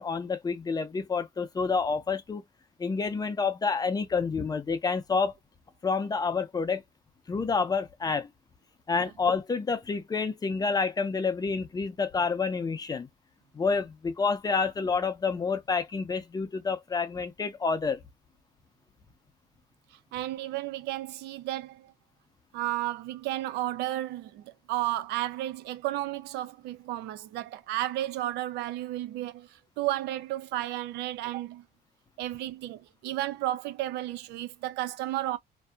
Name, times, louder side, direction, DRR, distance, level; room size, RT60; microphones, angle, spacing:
voice 1, 0.0-2.4 2.8-5.3 5.8-6.8 7.3-8.3 8.9-13.1 13.5-18.0, left 4 dB, 25° left, 0.5 m, -28 dB
voice 2, 20.1-21.9 22.5-29.5 29.8-31.6 32.2-35.4, right 15 dB, 85° right, 0.4 m, -33 dB
2.6 x 2.3 x 2.2 m
cardioid pair, 110°, 17 cm